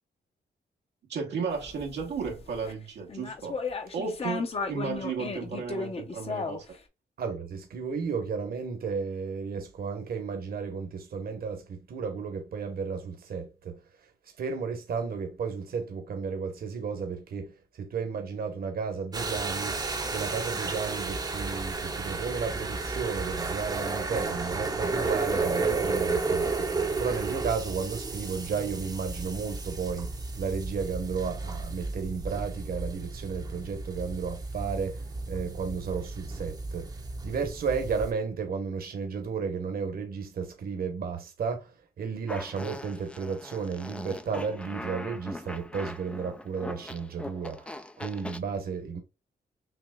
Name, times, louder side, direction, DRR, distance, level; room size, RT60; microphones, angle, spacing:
voice 1, 1.1-3.6 3.9-6.6, right 5 dB, 80° right, 1.0 m, -34 dB
sound 1, 1.5-2.7 3.1-6.8, left 4 dB, 35° left, 0.7 m, -35 dB
voice 2, 7.2-13.8 14.4-19.8 20.1-36.9 37.2-47.7 48.0-49.0, right 5 dB, 60° right, 1.1 m, -33 dB
sound 2, 19.1-38.1, right 3 dB, 25° right, 0.7 m, -32 dB
Fart, 42.3-48.4, left 1 dB, 5° left, 0.3 m, -41 dB
5.9 x 3.0 x 2.3 m
wide cardioid pair, 125°, 17 cm